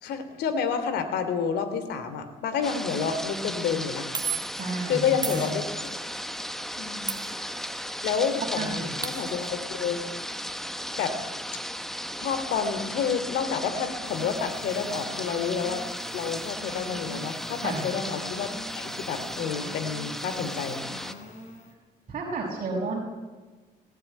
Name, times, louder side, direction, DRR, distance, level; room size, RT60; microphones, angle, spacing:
voice 1, 0.0-4.1 4.9-5.6 6.8-7.1 8.0-10.0 11.0-11.2 12.2-15.8 16.1-20.8, left 6 dB, 75° left, 9 dB, 3.3 m, -29 dB
sound 1, 2.6-21.1, equal, ahead, 1.2 m, -36 dB
sound 2, 2.9-3.1 4.1-4.7 5.2-6.1 7.1-8.0 8.3-8.4 8.6-9.5, right 6 dB, 25° right, 2.0 m, -35 dB
voice 2, 4.6-5.5 8.6-8.9 17.6-17.8 22.1-23.0, right 3 dB, 40° right, -4 dB, 5.9 m, -31 dB
sound 3, 14.0-21.7, left 2 dB, 45° left, 5.2 m, -44 dB
20.0 x 19.0 x 9.4 m, 1.3 s
cardioid pair, 110°, 17 cm